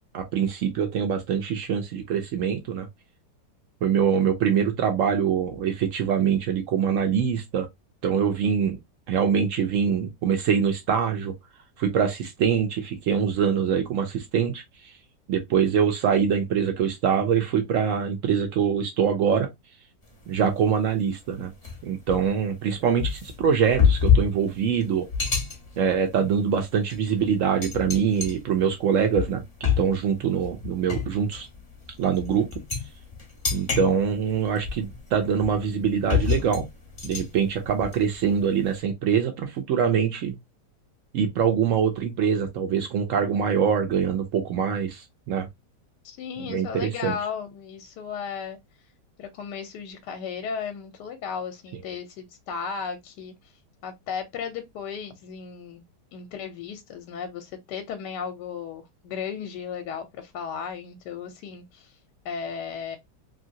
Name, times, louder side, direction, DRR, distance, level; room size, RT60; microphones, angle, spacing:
voice 1, 0.1-2.9 3.8-7.7 8.0-8.8 9.1-11.3 11.8-14.9 15.3-19.5 20.3-21.5 21.8-25.1 25.8-29.4 29.8-31.5 32.0-32.5 33.5-36.7 37.0-40.3 41.1-45.5 46.4-47.2, right 7 dB, 70° right, 0.7 m, -24 dB
sound 1, 20.1-20.4 20.8-20.9 21.6-38.8, left 6 dB, 30° left, 0.7 m, -28 dB
voice 2, 46.0-48.6 49.2-53.3 53.8-55.8 56.1-61.9 62.2-63.0, left 6 dB, 80° left, 1.2 m, -35 dB
2.8 x 2.7 x 2.6 m
omnidirectional pair, 1.8 m